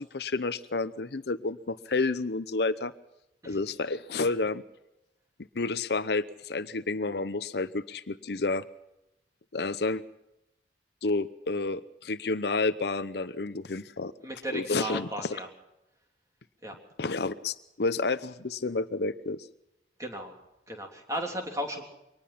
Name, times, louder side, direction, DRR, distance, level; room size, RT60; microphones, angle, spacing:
voice 1, 0.0-2.9 3.5-4.6 5.5-8.6 9.5-10.0 11.0-14.1 14.5-15.1 17.0-19.5, left 3 dB, 65° left, 13 dB, 0.7 m, -30 dB
voice 2, 14.2-15.5 16.6-16.7 20.0-20.3 20.7-21.8, right 1 dB, 20° right, 2 dB, 3.2 m, -35 dB
23.5 x 19.0 x 5.8 m, 0.90 s
head